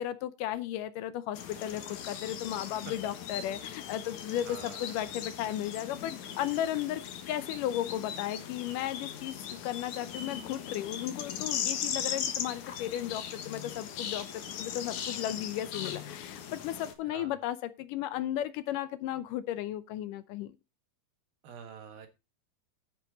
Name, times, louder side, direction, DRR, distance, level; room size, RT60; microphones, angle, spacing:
voice 1, 0.0-20.6, left 12 dB, 80° left, 1.9 m, -35 dB
sound 1, 1.4-16.9, left 8 dB, 60° left, 2.5 m, -39 dB
voice 2, 4.5-4.9 17.1-17.4 21.4-22.1, right 6 dB, 75° right, 3.2 m, -46 dB
11.5 x 8.9 x 3.9 m
omnidirectional pair, 4.4 m